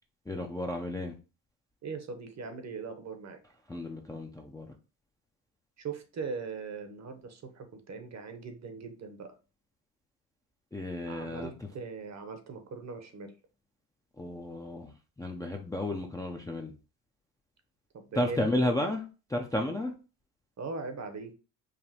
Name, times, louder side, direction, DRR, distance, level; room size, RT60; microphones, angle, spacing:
voice 1, 0.3-1.1 3.7-4.7 10.7-11.7 14.2-14.9 15.2-16.7 18.1-19.0 19.3-19.9, left 1 dB, 10° left, 2 dB, 0.4 m, -32 dB
voice 2, 1.8-3.4 5.8-9.3 11.0-13.3 17.9-18.7 20.6-21.3, right 4 dB, 40° right, 7 dB, 0.9 m, -40 dB
5.0 x 2.6 x 2.8 m, 0.33 s
cardioid pair, 95°, 42 cm